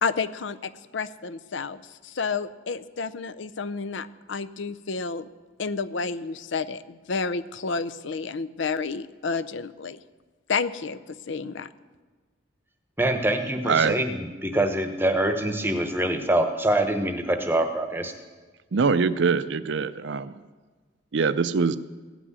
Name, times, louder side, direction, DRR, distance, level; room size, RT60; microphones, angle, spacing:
voice 1, 0.0-5.3 5.6-10.0 10.5-11.7, left 4 dB, 70° left, 13 dB, 0.6 m, -30 dB
voice 2, 13.0-18.1, right 1 dB, 10° right, 6 dB, 1.0 m, -25 dB
voice 3, 13.6-13.9 18.7-20.4 21.1-21.8, right 5 dB, 65° right, 14 dB, 0.5 m, -23 dB
16.0 x 6.1 x 9.5 m, 1.4 s
head